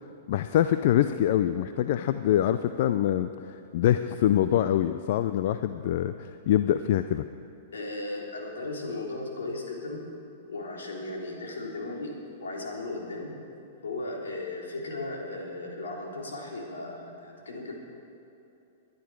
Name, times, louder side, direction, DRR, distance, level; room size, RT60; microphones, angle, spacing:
voice 1, 0.3-3.3 3.7-7.2, left 11 dB, 55° left, 11 dB, 0.4 m, -24 dB
voice 2, 7.7-10.1 10.5-13.4 13.8-17.7, left 2 dB, 80° left, -1 dB, 3.2 m, -36 dB
22.5 x 10.5 x 4.7 m, 2.8 s
hypercardioid pair, 110°, 0 cm